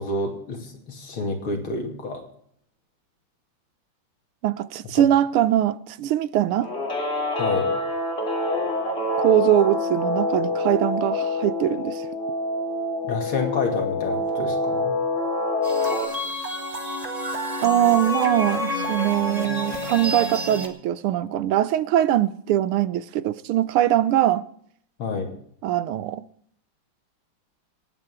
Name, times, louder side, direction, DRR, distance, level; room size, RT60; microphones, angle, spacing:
voice 1, 0.0-2.3 4.9-5.0 7.4-7.7 13.0-15.0 25.0-25.3, left 3 dB, 75° left, 3.3 m, -29 dB
voice 2, 4.4-6.7 9.2-12.1 17.6-24.4 25.6-26.2, right 12 dB, 90° right, 1.6 m, -22 dB
Guitar, 6.6-16.1, left 2 dB, 30° left, 3.0 m, -26 dB
sound 1, 15.6-20.7, left 1 dB, 20° right, 1.5 m, -29 dB
26.5 x 8.8 x 3.6 m
omnidirectional pair, 2.3 m